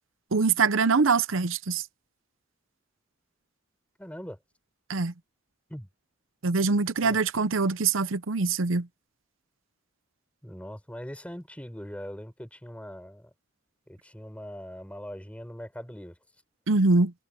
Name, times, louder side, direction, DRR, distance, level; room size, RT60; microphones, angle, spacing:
voice 1, 0.3-1.8 4.9-5.1 6.4-8.9 16.7-17.1, right 4 dB, 70° right, 0.8 m, -23 dB
voice 2, 4.0-4.4 5.7-5.9 7.0-7.2 10.4-13.3 13.9-16.2, equal, 5° left, 6.8 m, -41 dB
head